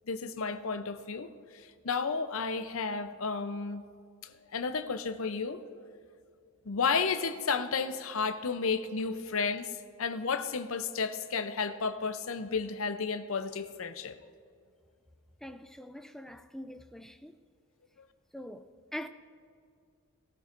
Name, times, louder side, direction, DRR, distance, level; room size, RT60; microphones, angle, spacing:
voice 1, 0.1-3.8 4.2-5.6 6.7-14.2, left 5 dB, 70° left, 0.6 m, -32 dB
voice 2, 15.4-17.4 18.3-19.1, equal, ahead, 0.4 m, -43 dB
18.5 x 13.5 x 2.5 m
head